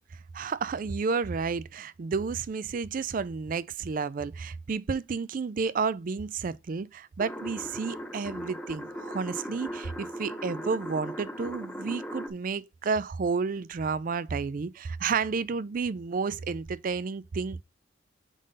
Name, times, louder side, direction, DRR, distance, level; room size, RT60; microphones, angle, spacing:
voice 1, 0.3-17.6, right 5 dB, 45° right, 0.4 m, -31 dB
sound 1, 7.2-12.3, equal, 10° left, 1.0 m, -38 dB
5.0 x 3.8 x 5.3 m
head